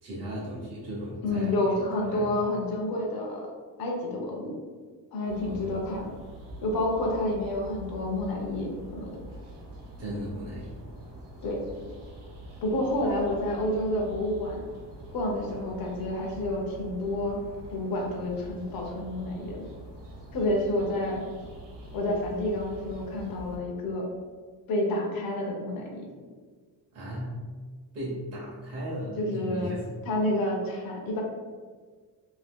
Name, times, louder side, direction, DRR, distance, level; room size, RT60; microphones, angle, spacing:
voice 1, 0.0-1.5 2.0-2.3 5.5-5.6 10.0-10.8 26.9-27.4 27.9-29.8, equal, 35° right, -7 dB, 0.8 m, -36 dB
voice 2, 1.2-3.5 3.8-4.6 5.1-6.1 6.6-9.1 11.4-11.6 12.6-14.6 15.1-17.4 17.7-19.6 20.3-21.2 21.9-24.1 24.7-26.1 29.2-29.7 30.1-31.2, left 1 dB, 55° left, -1 dB, 0.7 m, -29 dB
sound 1, 5.2-23.6, right 1 dB, 75° right, 0.9 m, -45 dB
2.7 x 2.6 x 3.5 m, 1.5 s
wide cardioid pair, 180°, 42 cm